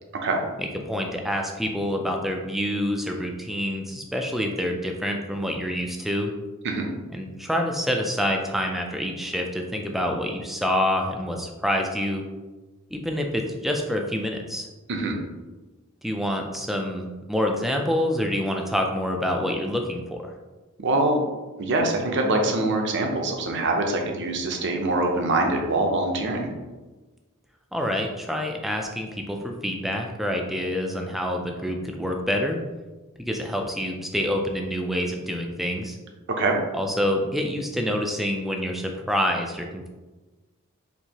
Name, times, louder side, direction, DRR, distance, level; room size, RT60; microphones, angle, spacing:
voice 1, 0.6-6.3 7.1-12.3 12.9-14.7 16.0-20.3 27.7-32.6 33.2-36.0 36.7-39.9, equal, ahead, 2 dB, 0.3 m, -27 dB
voice 2, 20.8-21.2 21.6-26.5 36.3-36.6, right 2 dB, 55° right, 2 dB, 0.6 m, -24 dB
4.4 x 2.8 x 2.8 m, 1.2 s
head